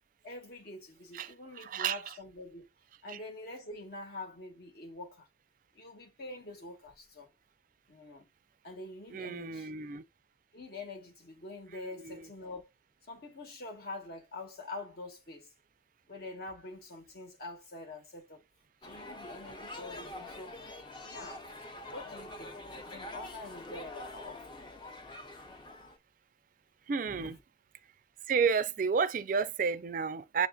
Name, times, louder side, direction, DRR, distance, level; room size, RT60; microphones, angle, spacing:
voice 1, 0.2-2.7 3.0-5.3 5.7-7.3 7.9-8.3 8.6-9.7 10.5-12.7 13.1-15.5 16.1-18.4 18.8-20.5 21.0-21.4 21.9-24.7 27.1-27.3, left 2 dB, 55° left, 1.1 m, -45 dB
voice 2, 1.1-2.1 3.1-3.2 9.1-10.0 12.0-12.3 26.9-27.4 28.3-30.5, right 6 dB, 45° right, 0.3 m, -31 dB
sound 1, 18.8-26.0, left 2 dB, 25° left, 0.5 m, -45 dB
7.0 x 2.5 x 2.3 m
head